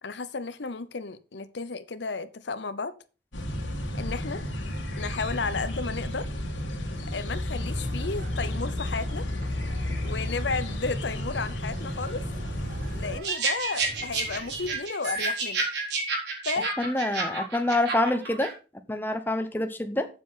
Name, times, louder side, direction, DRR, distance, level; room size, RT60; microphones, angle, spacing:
voice 1, 0.0-2.9 3.9-4.4 5.0-6.3 7.1-9.3 9.8-12.2 12.9-15.6 16.4-16.7, left 4 dB, 70° left, 0.8 m, -33 dB
sound 1, 3.3-13.2, left 1 dB, 90° left, 2.4 m, -32 dB
sound 2, 7.6-14.8, right 1 dB, 50° right, 1.5 m, -43 dB
sound 3, 13.2-18.5, right 3 dB, 70° right, 4.1 m, -30 dB
voice 2, 16.8-18.5 18.9-20.1, left 1 dB, 10° left, 0.8 m, -26 dB
7.8 x 7.5 x 5.6 m
head